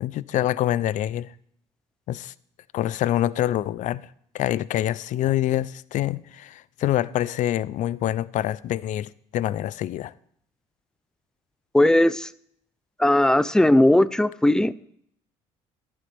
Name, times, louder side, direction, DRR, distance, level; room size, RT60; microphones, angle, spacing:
voice 1, 0.0-1.3 2.1-2.3 2.7-4.0 4.3-10.1, left 13 dB, 60° left, 0.5 m, -26 dB
voice 2, 11.7-12.3 13.0-14.7, left 1 dB, 5° left, 0.5 m, -18 dB
13.5 x 11.5 x 3.4 m
supercardioid pair, 80°, 14 cm